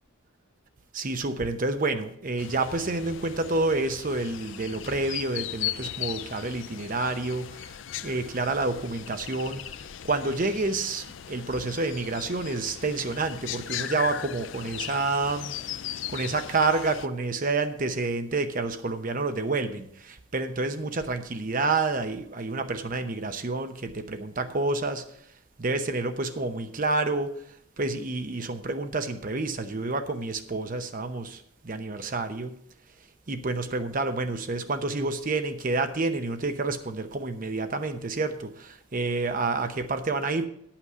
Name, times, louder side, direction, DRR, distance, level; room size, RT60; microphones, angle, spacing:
voice 1, 0.9-7.6 8.0-9.6 10.0-15.5 16.1-25.0 25.6-27.4 27.8-32.5 33.3-40.5, right 3 dB, 40° right, 0.8 m, -29 dB
sound 1, 2.4-17.1, left 10 dB, 60° left, 0.4 m, -38 dB
9.5 x 5.9 x 6.8 m
head